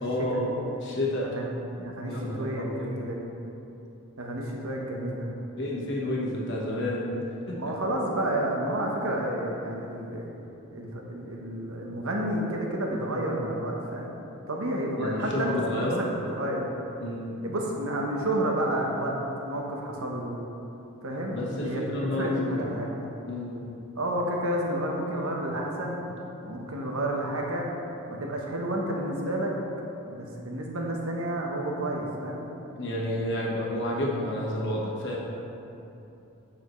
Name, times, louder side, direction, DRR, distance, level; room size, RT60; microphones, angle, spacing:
voice 1, 0.0-1.3 2.1-2.9 5.6-7.6 15.0-16.1 17.0-17.5 21.3-22.8 23.3-23.7 32.8-35.2, left 1 dB, 55° left, -4 dB, 1.2 m, -30 dB
voice 2, 1.3-3.2 4.2-5.3 7.5-10.4 10.7-14.1 14.5-16.6 17.4-19.1 19.4-20.3 21.0-23.0 23.9-26.1 26.4-27.7 28.1-29.5 30.0-32.5, right 1 dB, 75° right, -1 dB, 1.0 m, -30 dB
8.0 x 5.8 x 3.1 m, 2.9 s
head